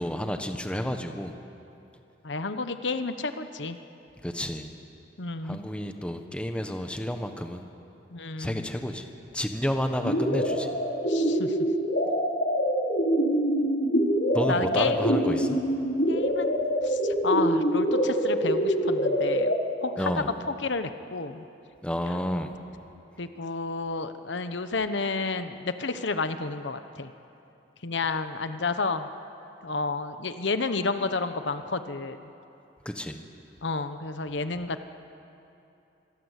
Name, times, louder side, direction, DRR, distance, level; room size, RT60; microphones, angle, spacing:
voice 1, 0.0-1.3 4.2-4.7 5.4-7.6 8.4-10.7 14.3-15.6 20.0-20.3 21.8-22.5 32.8-33.2, equal, 5° left, 6 dB, 1.2 m, -30 dB
voice 2, 2.2-3.8 5.2-5.6 8.1-8.7 11.1-11.6 14.5-15.2 16.1-19.5 19.8-21.4 23.2-27.1 27.8-29.1 29.6-32.2 33.6-34.8, left 3 dB, 75° left, 9 dB, 1.0 m, -31 dB
sound 1, 10.0-19.6, equal, 60° left, 4.5 m, -25 dB
25.5 x 22.5 x 8.3 m, 2.8 s
head